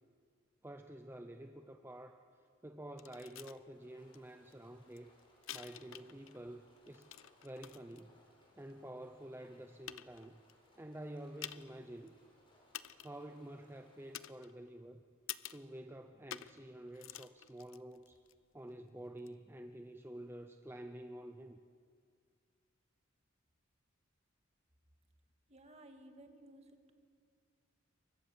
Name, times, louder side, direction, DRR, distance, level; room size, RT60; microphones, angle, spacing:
voice 1, 0.6-2.2 2.6-5.1 5.5-7.1 7.4-8.1 8.6-10.4 10.8-12.1 13.0-15.0 15.5-18.2 18.5-21.6, right 1 dB, 10° right, 7 dB, 0.7 m, -49 dB
sound 1, 3.0-3.6 4.1-4.2 4.5-6.4 6.7-8.0 8.7-8.8 9.4-9.5 9.9-10.5 11.4-11.8 12.1-12.2 12.7-13.3 14.1-14.8 15.3-15.7 16.3-16.6 16.9-18.3 19.2-19.3, left 12 dB, 70° left, 0.7 m, -49 dB
sound 2, 3.7-14.2, left 1 dB, 25° left, 5.8 m, -69 dB
voice 2, 25.5-26.9, right 1 dB, 30° right, 5 dB, 2.2 m, -57 dB
28.5 x 23.5 x 7.4 m, 2.2 s
head